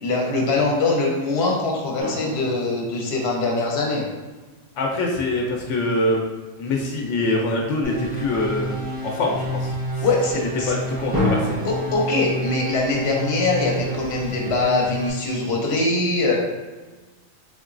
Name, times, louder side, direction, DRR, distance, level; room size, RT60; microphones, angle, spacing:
voice 1, 0.0-4.1 10.0-10.7 11.6-16.4, left 2 dB, 65° left, -1 dB, 1.0 m, -22 dB
sound 1, 2.0-4.1 11.1-11.8, left 1 dB, 20° right, 1.0 m, -27 dB
voice 2, 4.8-6.2 6.6-8.7 9.0-9.7 10.7-11.6, left 2 dB, 90° left, 0 dB, 0.9 m, -24 dB
sound 2, 7.8-15.1, right 1 dB, 85° right, 1.7 m, -30 dB
3.9 x 2.9 x 2.5 m, 1.3 s
omnidirectional pair, 1.2 m